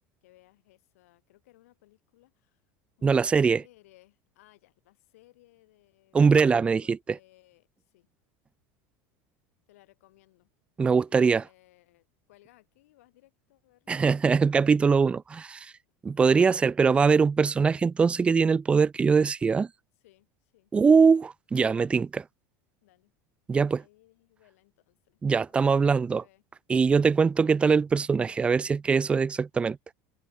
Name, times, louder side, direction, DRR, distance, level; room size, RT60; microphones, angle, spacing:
voice 1, 0.2-2.6 3.0-8.1 9.7-10.5 10.9-11.0 11.3-14.0 20.0-20.7 22.8-23.1 23.8-26.4, left 18 dB, 90° left, 6.0 m, -62 dB
voice 2, 3.0-3.6 6.1-7.2 10.8-11.4 13.9-15.7 16.0-19.7 20.7-22.2 23.5-23.8 25.2-26.2 26.7-29.8, right 5 dB, 15° right, 0.4 m, -22 dB
supercardioid pair, 140°, 8 cm